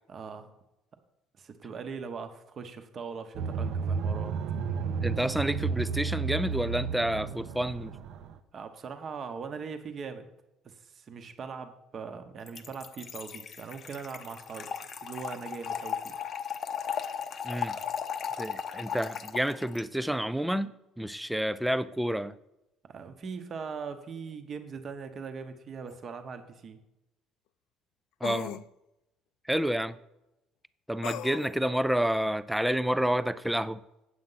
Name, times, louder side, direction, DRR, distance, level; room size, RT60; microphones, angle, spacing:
voice 1, 0.1-0.5 1.4-4.4 8.5-10.3 10.6-14.7 15.0-16.1 22.8-26.8, right 5 dB, 30° right, 0.9 m, -40 dB
sound 1, 3.3-8.4, right 5 dB, 60° right, 0.6 m, -32 dB
voice 2, 5.0-7.9 17.4-17.8 18.4-22.4 28.2-28.6 29.5-30.0 30.9-33.8, right 1 dB, ahead, 0.3 m, -29 dB
Trickle dribble / Fill (with liquid), 12.5-19.8, left 7 dB, 35° left, 0.7 m, -36 dB
sound 2, 25.9-26.0 28.2-28.6 31.0-31.6, left 13 dB, 75° left, 0.4 m, -37 dB
8.7 x 7.9 x 5.6 m
cardioid pair, 170°, 0 cm